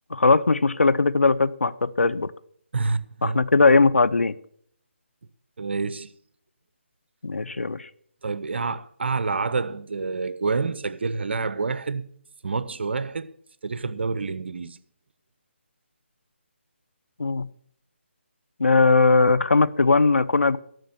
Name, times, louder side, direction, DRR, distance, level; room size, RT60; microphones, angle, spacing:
voice 1, 0.1-2.3 3.2-4.3 7.2-7.9 17.2-17.5 18.6-20.6, left 3 dB, 90° left, 0.7 m, -19 dB
voice 2, 2.7-3.4 5.6-6.1 8.2-12.0 12.4-13.3 13.6-14.8, right 4 dB, 60° right, 0.8 m, -28 dB
12.5 x 6.5 x 8.2 m
figure-of-eight pair, 160°, 7 cm